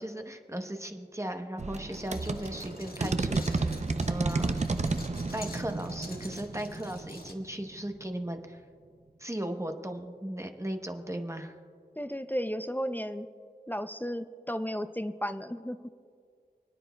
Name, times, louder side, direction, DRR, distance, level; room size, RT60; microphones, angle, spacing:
voice 1, 0.0-4.6 5.3-8.6 9.2-11.6, right 1 dB, 15° right, 4 dB, 0.9 m, -37 dB
sound 1, 1.6-8.0, right 3 dB, 45° right, 0.5 m, -32 dB
sound 2, 1.9-7.3, left 1 dB, 60° left, 1.5 m, -46 dB
voice 2, 12.0-13.3 13.7-15.8, equal, 10° left, 10 dB, 0.4 m, -34 dB
29.5 x 9.9 x 2.3 m, 2.1 s
wide cardioid pair, 60°, 17 cm